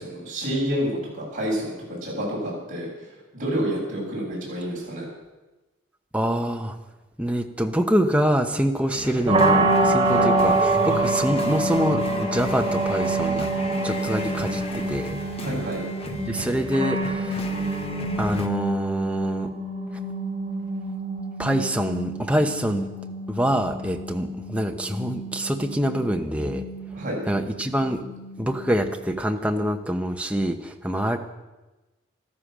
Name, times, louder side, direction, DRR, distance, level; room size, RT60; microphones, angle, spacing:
voice 1, 0.0-3.1 3.3-5.1 10.1-10.5 15.4-15.8 26.9-27.2, equal, 40° right, -5 dB, 7.5 m, -29 dB
voice 2, 6.1-6.8 7.2-13.5 13.8-15.2 16.2-17.5 18.2-19.5 21.4-22.9 23.3-26.6 27.3-28.0 28.4-31.2, equal, 5° right, 4 dB, 0.9 m, -25 dB
sound 1, 8.9-18.5, left 2 dB, 30° left, 1.2 m, -35 dB
sound 2, 9.3-29.1, right 2 dB, 25° right, 3.0 m, -27 dB
15.5 x 13.0 x 6.2 m, 1.1 s
head